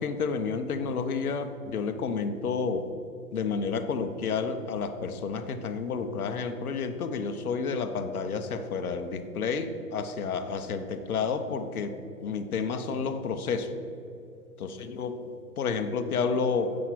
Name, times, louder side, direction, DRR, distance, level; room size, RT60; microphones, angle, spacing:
voice 1, 0.0-2.9 3.3-13.7 14.6-16.8, left 5 dB, 65° left, 8 dB, 1.1 m, -30 dB
10.0 x 7.6 x 5.9 m, 2.8 s
figure-of-eight pair, 130°, 47 cm